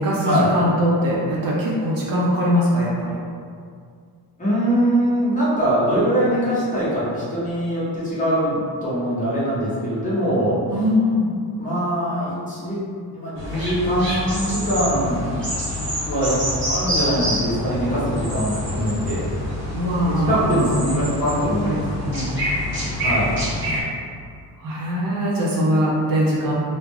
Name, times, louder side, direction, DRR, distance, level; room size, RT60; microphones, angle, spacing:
voice 1, 0.0-3.2 10.7-11.3 19.7-21.0 21.6-21.8 22.0-22.4 24.6-26.5, equal, 55° right, -5 dB, 0.5 m, -21 dB
voice 2, 4.4-10.8 11.6-12.8 13.1-15.3 16.0-16.4 16.7-19.2 20.0-21.8 23.0-23.3, equal, 20° left, -10 dB, 0.8 m, -22 dB
sound 1, 13.4-23.8, equal, 30° right, 0.9 m, -27 dB
2.3 x 2.0 x 3.4 m, 2.2 s
wide cardioid pair, 165°, 40 cm